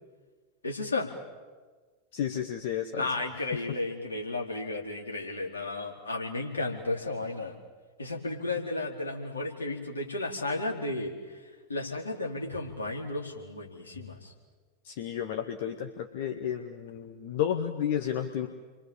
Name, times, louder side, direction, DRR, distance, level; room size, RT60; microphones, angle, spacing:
voice 1, 0.6-1.1 2.9-7.5 8.0-11.1 11.7-14.3, left 2 dB, 75° left, 0 dB, 4.5 m, -33 dB
voice 2, 2.1-3.1 3.5-3.6 14.8-18.5, left 9 dB, 50° left, 5 dB, 1.8 m, -32 dB
30.0 x 24.0 x 7.4 m, 1.4 s
figure-of-eight pair, 90°, 0 cm